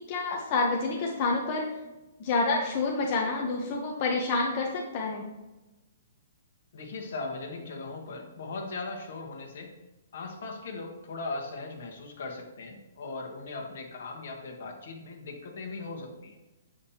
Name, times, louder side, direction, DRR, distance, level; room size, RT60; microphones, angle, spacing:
voice 1, 0.0-1.7 2.2-5.2, left 3 dB, 30° left, 0 dB, 0.6 m, -28 dB
voice 2, 6.7-9.7 10.1-16.4, left 3 dB, 55° left, 3 dB, 1.2 m, -39 dB
7.1 x 5.1 x 2.8 m, 1.1 s
hypercardioid pair, 175°, 0 cm